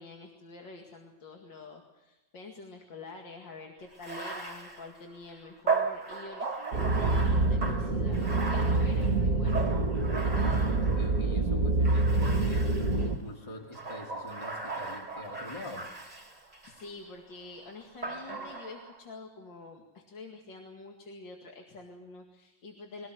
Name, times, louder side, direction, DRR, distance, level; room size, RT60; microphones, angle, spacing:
voice 1, 0.0-9.7 16.4-23.1, left 3 dB, 70° left, 1 dB, 2.9 m, -47 dB
Bathtub (filling or washing), 3.9-11.3 11.8-13.1 13.7-16.9 18.0-19.0, right 4 dB, 20° right, 3.9 m, -37 dB
sound 1, 6.7-13.2, right 2 dB, 45° right, 2.1 m, -26 dB
voice 2, 10.2-12.6 13.0-15.9, left 1 dB, 15° left, 1 dB, 2.5 m, -43 dB
23.5 x 18.0 x 7.8 m, 1.0 s
omnidirectional pair, 2.1 m